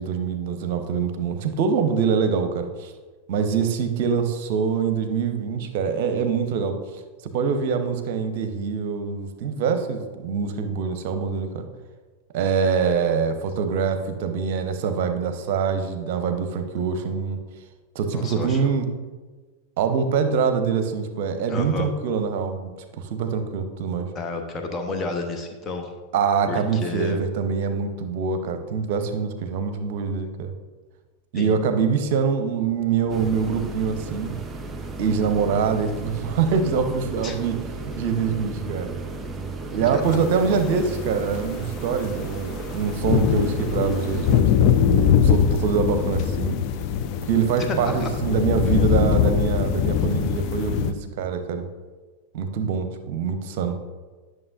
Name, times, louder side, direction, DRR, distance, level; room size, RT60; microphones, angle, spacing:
voice 1, 0.0-2.9 3.3-6.8 7.3-11.7 12.3-17.4 17.9-18.9 19.8-24.1 26.1-30.5 31.3-34.3 35.0-37.5 38.0-38.9 39.6-46.6 47.3-51.7 52.3-53.8, right 6 dB, 50° right, 8 dB, 0.8 m, -24 dB
voice 2, 18.1-18.7 21.5-21.9 24.1-25.9 26.5-27.2 31.3-31.6 37.2-37.4 39.9-40.0 46.9-47.0 47.6-48.1, left 3 dB, 25° left, 4 dB, 1.0 m, -31 dB
sound 1, 33.1-44.4, right 3 dB, 15° right, 0.7 m, -34 dB
sound 2, 40.6-40.7 41.2-50.9, left 8 dB, 40° left, 0.4 m, -22 dB
11.0 x 6.3 x 2.6 m, 1.3 s
figure-of-eight pair, 90°, 0 cm